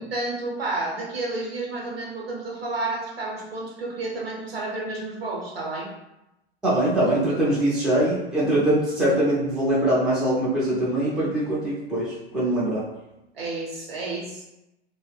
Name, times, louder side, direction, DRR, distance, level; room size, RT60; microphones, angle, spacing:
voice 1, 0.0-5.9 13.3-14.4, right 2 dB, 65° right, -3 dB, 0.9 m, -31 dB
voice 2, 6.6-12.8, right 1 dB, ahead, -8 dB, 0.4 m, -22 dB
2.2 x 2.0 x 3.3 m, 0.92 s
figure-of-eight pair, 95°, 32 cm